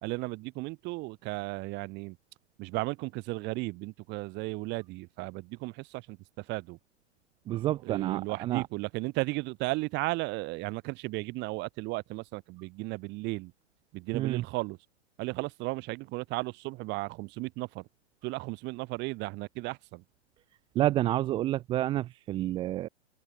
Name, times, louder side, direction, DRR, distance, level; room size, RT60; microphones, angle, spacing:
voice 1, 0.0-2.2 2.6-6.8 7.8-13.5 13.9-14.8 15.2-17.9 18.2-20.0, right 23 dB, 30° right, 1.6 m, -35 dB
voice 2, 7.5-8.6 14.1-14.4 20.8-22.9, right 14 dB, 15° right, 0.5 m, -29 dB
hypercardioid pair, 140°, 37 cm